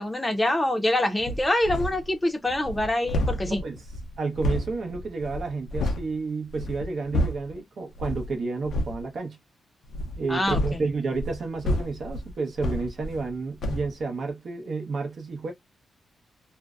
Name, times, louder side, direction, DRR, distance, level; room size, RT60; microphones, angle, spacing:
voice 1, 0.0-3.6 10.3-10.6, left 1 dB, 15° left, 0.6 m, -25 dB
sound 1, 1.2-2.1 2.5-6.1 6.5-7.6 8.0-8.3 8.6-9.0 9.9-13.3 13.6-13.9, left 1 dB, 75° left, 0.5 m, -30 dB
voice 2, 3.4-3.8 4.2-9.4 10.2-15.5, right 4 dB, 55° right, 0.7 m, -31 dB
2.6 x 2.1 x 2.3 m
cardioid pair, 115°, 0 cm